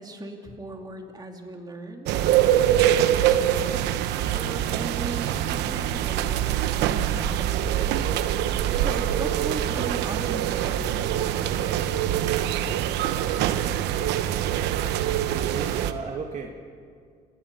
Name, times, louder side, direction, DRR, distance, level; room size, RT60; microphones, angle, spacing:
voice 1, 0.0-2.2 2.7-3.8 4.2-8.1 8.7-11.7, right 2 dB, 25° right, 2 dB, 3.0 m, -38 dB
sound 1, 2.1-15.9, right 11 dB, 90° right, 1.1 m, -24 dB
voice 2, 13.4-13.7 15.3-16.5, right 5 dB, 45° right, 1 dB, 2.0 m, -35 dB
28.0 x 20.0 x 5.6 m, 2.1 s
cardioid pair, 110°, 17 cm